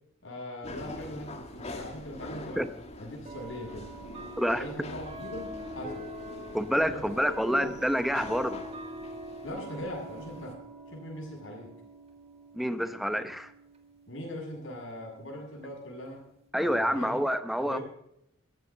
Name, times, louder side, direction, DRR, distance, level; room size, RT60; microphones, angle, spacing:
voice 1, 0.2-2.6 3.0-3.9 4.5-6.1 6.9-7.2 7.5-7.7 9.4-10.6 10.9-11.7 14.1-16.2 16.6-17.2 17.6-17.8, left 1 dB, 65° left, -2 dB, 6.7 m, -40 dB
sound 1, 0.6-10.5, left 1 dB, 30° left, 2.0 m, -45 dB
sound 2, 1.0-1.1 2.2-2.3 3.2-16.5, right 1 dB, 30° right, 2.1 m, -45 dB
voice 2, 6.5-8.6 12.5-13.5 16.5-17.8, equal, ahead, 11 dB, 0.8 m, -28 dB
16.5 x 13.5 x 3.9 m, 0.79 s
head